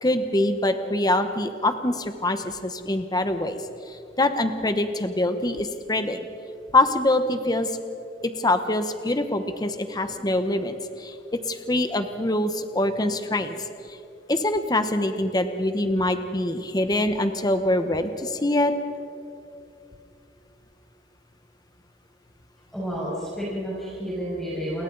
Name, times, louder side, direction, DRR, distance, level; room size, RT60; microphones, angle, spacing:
voice 1, 0.0-6.3 6.7-7.7 8.2-14.0 14.3-18.7, left 1 dB, 20° left, 8 dB, 1.0 m, -24 dB
voice 2, 22.7-24.8, equal, ahead, -7 dB, 5.9 m, -30 dB
29.5 x 22.5 x 4.0 m, 2.6 s
head